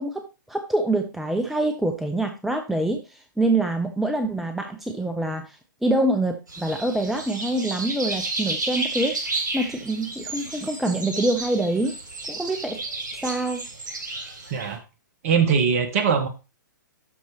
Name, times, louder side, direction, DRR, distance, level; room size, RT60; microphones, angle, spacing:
voice 1, 0.0-12.0 12.3-12.8 13.2-13.6, right 2 dB, ahead, 6 dB, 0.7 m, -25 dB
sound 1, 6.5-14.8, right 2 dB, 65° right, 4.3 m, -32 dB
voice 2, 15.2-16.3, right 6 dB, 40° right, 8 dB, 1.5 m, -21 dB
12.5 x 4.6 x 3.0 m, 0.29 s
figure-of-eight pair, 120°, 11 cm